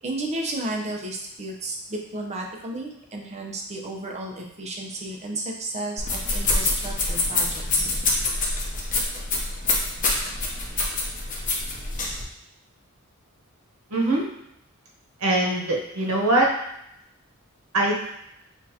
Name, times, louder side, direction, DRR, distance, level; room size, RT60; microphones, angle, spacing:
voice 1, 0.0-7.9, right 2 dB, 30° right, -1 dB, 0.7 m, -33 dB
sound 1, 6.0-12.2, left 2 dB, 40° left, 0.8 m, -26 dB
voice 2, 13.9-14.2 15.2-16.5 17.7-18.1, right 1 dB, 85° right, -2 dB, 1.0 m, -22 dB
6.1 x 2.5 x 2.8 m, 0.78 s
head